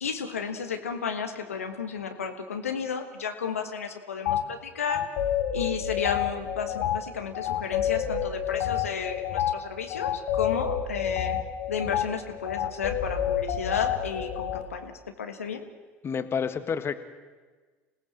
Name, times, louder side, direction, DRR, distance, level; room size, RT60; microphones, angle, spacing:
voice 1, 0.0-5.0 5.5-11.4 11.7-15.6, left 6 dB, 85° left, 6 dB, 1.6 m, -33 dB
sound 1, 4.2-4.4 4.9-14.6, left 10 dB, 65° left, 1.9 m, -29 dB
voice 2, 16.0-16.9, left 6 dB, 35° left, 10 dB, 1.5 m, -29 dB
26.5 x 17.5 x 7.6 m, 1.4 s
hypercardioid pair, 70°, 7 cm